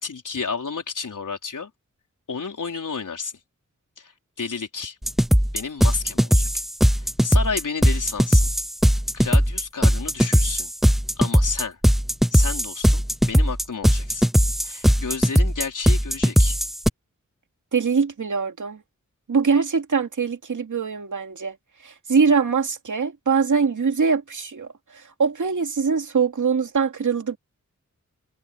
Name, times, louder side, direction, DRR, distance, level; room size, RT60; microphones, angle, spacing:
voice 1, 0.0-1.7 2.3-3.3 4.0-4.1 4.4-5.0 5.5-8.5 8.9-10.7 11.2-11.8 12.3-14.2 14.6-16.6, left 5 dB, 80° left, 4.4 m, -31 dB
sound 1, 5.0-16.9, equal, ahead, 0.3 m, -19 dB
voice 2, 17.7-18.8 19.3-21.5 21.8-24.7 25.2-27.4, right 5 dB, 75° right, 2.6 m, -22 dB
wide cardioid pair, 110°, 31 cm